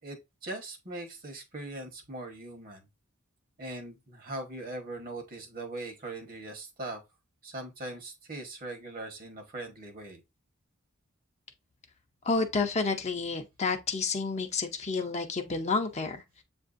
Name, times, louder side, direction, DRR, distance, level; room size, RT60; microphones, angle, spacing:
voice 1, 0.0-2.8 3.6-7.0 7.4-10.2, right 2 dB, 45° right, 1.1 m, -40 dB
voice 2, 12.3-16.4, left 4 dB, 35° left, 0.6 m, -30 dB
7.5 x 2.6 x 2.5 m
head